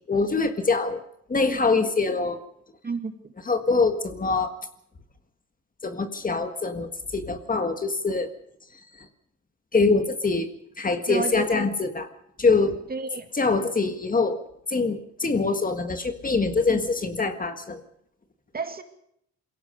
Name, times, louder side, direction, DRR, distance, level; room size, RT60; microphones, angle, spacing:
voice 1, 0.1-1.0 1.3-2.4 3.5-4.5 5.8-8.3 9.7-10.5 10.8-12.1 12.4-12.8 13.3-14.4 14.7-17.8, left 4 dB, 30° left, 8 dB, 1.7 m, -24 dB
voice 2, 2.8-3.3 11.1-11.7 12.9-13.3 16.7-16.9 18.5-18.8, right 4 dB, 30° right, 7 dB, 2.2 m, -31 dB
22.5 x 17.0 x 6.8 m, 0.74 s
cardioid pair, 90°, 30 cm